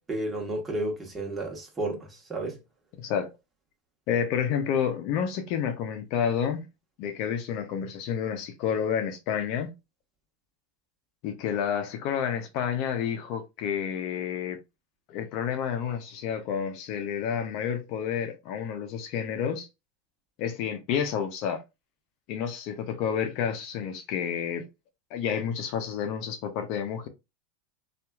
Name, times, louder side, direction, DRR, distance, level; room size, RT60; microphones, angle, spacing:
voice 1, 0.1-2.6, right 1 dB, 20° right, 1.2 m, -32 dB
voice 2, 3.0-3.3 4.1-6.7 7.0-9.7 11.2-14.6 15.1-19.7 20.4-21.6 22.3-24.7 25.1-27.1, left 8 dB, 55° left, 0.6 m, -30 dB
2.8 x 2.4 x 2.3 m
hypercardioid pair, 100°, 0 cm